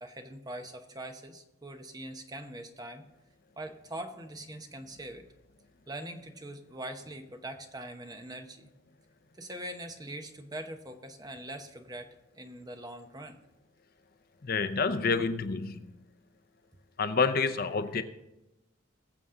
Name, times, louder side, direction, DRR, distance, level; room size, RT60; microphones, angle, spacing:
voice 1, 0.0-3.0 3.6-5.3 5.9-8.7 9.3-13.4, right 1 dB, 20° right, 6 dB, 0.9 m, -42 dB
voice 2, 14.4-15.9 17.0-18.0, left 4 dB, 45° left, 10 dB, 0.6 m, -28 dB
21.5 x 7.2 x 3.7 m, 0.94 s
head